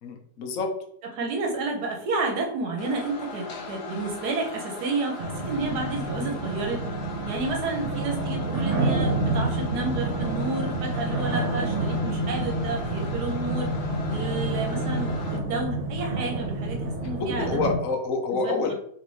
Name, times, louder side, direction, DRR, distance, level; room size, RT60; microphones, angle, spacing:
voice 1, 0.0-0.7 17.4-18.7, left 4 dB, 60° left, 3 dB, 1.1 m, -27 dB
voice 2, 1.1-6.8 7.3-13.7 14.1-17.5 18.3-18.7, right 3 dB, 75° right, 2 dB, 1.2 m, -31 dB
sound 1, 2.8-15.4, left 4 dB, 80° left, 1.3 m, -39 dB
sound 2, 5.2-17.8, right 2 dB, 45° right, 1.3 m, -28 dB
4.0 x 3.3 x 3.1 m, 0.67 s
omnidirectional pair, 1.7 m